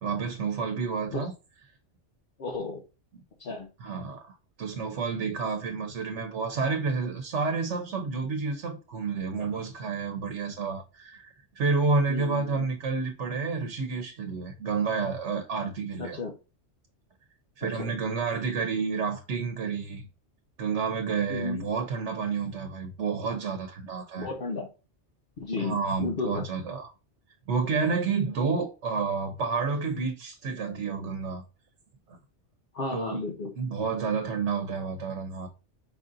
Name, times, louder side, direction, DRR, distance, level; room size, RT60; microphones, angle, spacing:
voice 1, 0.0-1.3 3.8-16.2 17.6-20.0 20.6-24.3 25.6-26.9 27.5-31.4 32.9-33.2 33.6-35.5, right 4 dB, 85° right, 1.1 m, -30 dB
voice 2, 2.4-2.8 3.4-3.7 12.1-12.7 16.0-16.3 17.8-18.1 21.3-21.6 24.2-24.7 25.4-26.4 32.7-33.5, left 3 dB, 55° left, 1.0 m, -33 dB
5.1 x 2.6 x 3.7 m
omnidirectional pair, 1.2 m